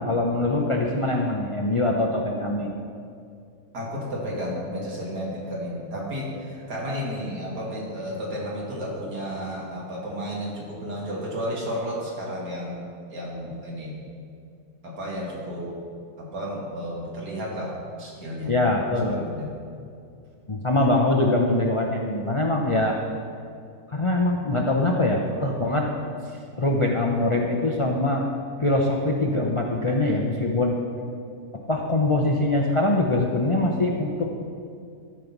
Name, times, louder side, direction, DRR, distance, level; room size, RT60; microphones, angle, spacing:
voice 1, 0.1-2.7 6.9-7.0 18.5-19.2 20.5-23.0 23.9-25.9 26.6-28.3 28.6-30.8 31.7-34.5, left 2 dB, 45° left, 0 dB, 0.4 m, -23 dB
voice 2, 3.7-12.8 13.1-14.0 14.8-15.7 16.2-18.5 19.0-19.6, equal, 75° right, -4 dB, 2.8 m, -32 dB
13.5 x 5.3 x 6.0 m, 2.4 s
omnidirectional pair, 1.8 m